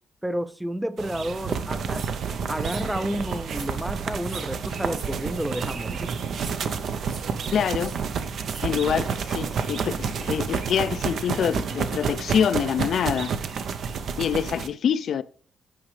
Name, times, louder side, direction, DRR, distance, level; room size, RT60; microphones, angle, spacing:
voice 1, 0.2-2.1 2.5-6.1, equal, 5° right, 0.4 m, -30 dB
sound 1, 1.0-14.7, right 6 dB, 60° right, 0.6 m, -29 dB
sound 2, 1.9-2.1 2.6-2.9 3.4-3.7 4.2-4.5 4.9-5.1 5.6-5.8 6.3-6.6 7.0-7.2 7.7-8.0 8.5-8.6, right 4 dB, 75° right, 2.0 m, -43 dB
voice 2, 7.5-8.0 8.6-13.3 14.2-15.2, left 8 dB, 60° left, 0.4 m, -25 dB
8.7 x 5.0 x 3.2 m
cardioid pair, 90°, 0 cm